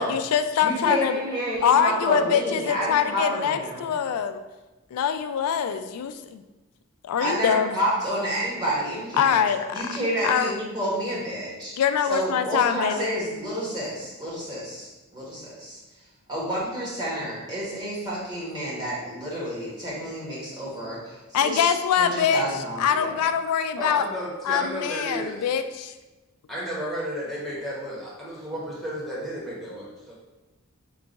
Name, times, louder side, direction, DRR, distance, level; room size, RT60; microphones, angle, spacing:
voice 1, 0.0-1.2 1.6-4.4 4.9-6.4 7.0-7.7 9.2-9.8 10.2-10.5 11.8-13.2 21.3-22.4 22.8-24.1 24.4-25.9, left 8 dB, 90° left, 10 dB, 0.3 m, -24 dB
voice 2, 0.6-3.9 7.2-9.4 9.7-11.8 12.1-15.8 16.3-21.7 22.0-23.1, equal, 20° right, -7 dB, 1.1 m, -29 dB
voice 3, 23.8-25.5 26.5-30.1, equal, ahead, -7 dB, 0.8 m, -33 dB
3.8 x 2.3 x 3.9 m, 1.1 s
head